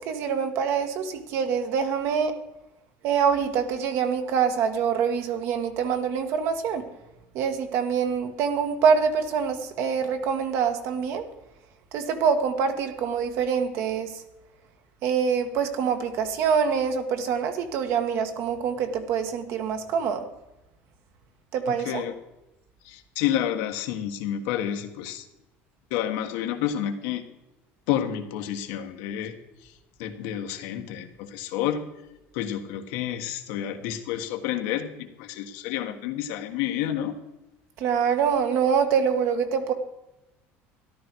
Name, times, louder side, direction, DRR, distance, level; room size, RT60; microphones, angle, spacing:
voice 1, 0.0-2.3 3.0-6.8 7.3-11.2 11.9-14.2 15.0-20.3 21.5-22.0 37.8-39.7, right 6 dB, 60° right, 7 dB, 1.5 m, -25 dB
voice 2, 21.7-22.1 22.8-25.2 25.9-27.2 27.9-29.4 30.0-31.8 32.3-37.1, left 11 dB, 85° left, 5 dB, 1.6 m, -29 dB
13.5 x 12.0 x 4.7 m, 0.96 s
cardioid pair, 145°, 5 cm